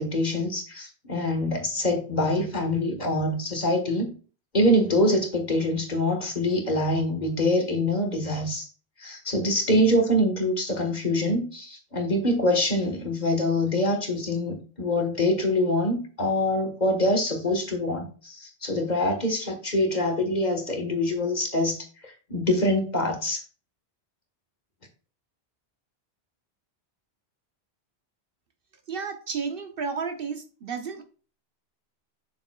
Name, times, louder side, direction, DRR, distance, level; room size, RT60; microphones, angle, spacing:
voice 1, 0.0-4.1 4.5-8.7 9.0-23.4, left 1 dB, 45° left, 1.5 m, -25 dB
voice 2, 28.9-31.0, right 5 dB, 60° right, 1.0 m, -32 dB
6.8 x 6.5 x 2.3 m
omnidirectional pair, 1.1 m